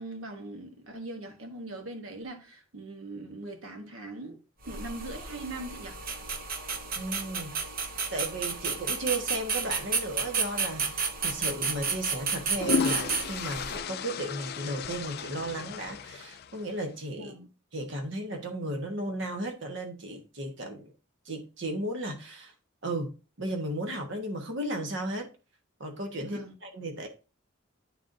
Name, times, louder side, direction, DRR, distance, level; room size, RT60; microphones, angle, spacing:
voice 1, 0.0-4.4 4.7-6.0 17.1-17.5 26.2-26.5, right 2 dB, 90° right, 1.1 m, -41 dB
sound 1, 4.6-13.8, right 5 dB, 45° right, 0.8 m, -32 dB
voice 2, 7.0-7.6 8.1-17.3 17.7-20.9 21.2-22.5 22.8-23.1 23.4-25.3 25.8-27.1, right 1 dB, 60° right, 1.1 m, -35 dB
sound 2, 10.9-11.1 12.2-16.8, left 6 dB, 50° left, 0.4 m, -34 dB
10.5 x 3.9 x 2.6 m
head